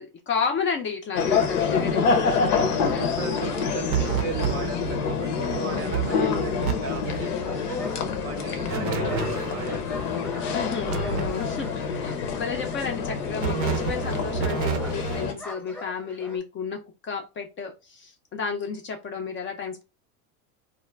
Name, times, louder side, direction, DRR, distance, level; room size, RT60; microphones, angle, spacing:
voice 1, 0.0-3.4 6.1-6.5 10.5-19.8, left 5 dB, 30° left, 0.4 m, -32 dB
sound 1, 1.1-15.3, left 5 dB, 85° left, 0.7 m, -27 dB
voice 2, 2.1-7.9 8.2-10.2, right 6 dB, 35° right, 0.4 m, -37 dB
sound 2, 3.9-5.1 5.5-5.6 5.9-6.7 7.0-7.3 8.7-9.8 10.8-11.8 13.4-15.3, right 8 dB, 90° right, 0.6 m, -30 dB
sound 3, 7.3-16.4, left 1 dB, 5° left, 0.7 m, -42 dB
2.4 x 2.1 x 3.1 m
hypercardioid pair, 95°, 44 cm